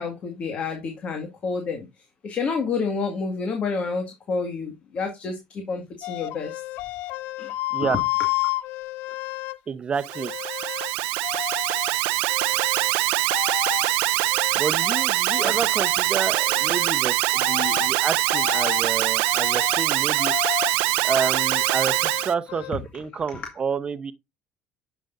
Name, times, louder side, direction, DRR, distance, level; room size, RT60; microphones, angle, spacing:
voice 1, 0.0-6.6 7.4-7.5 15.4-15.6 17.7-18.0 20.6-21.1 23.1-23.5, left 4 dB, 45° left, 2.0 m, -30 dB
sound 1, 6.0-9.6 10.1-10.9 11.2-12.0 12.3-12.9 13.3-13.9 14.3-15.5 15.8-16.0 16.3-16.9 17.3-17.9 18.3-18.8 19.3-19.8 20.2-20.7 21.1-22.7, left 19 dB, 75° left, 0.5 m, -31 dB
voice 2, 9.7-10.3 14.2-14.3 14.6-20.3 21.0-24.1, right 6 dB, 35° right, 0.9 m, -29 dB
Alarm, 10.0-22.3, right 20 dB, 85° right, 0.6 m, -23 dB
10.0 x 6.1 x 2.6 m
supercardioid pair, 100°, 3 cm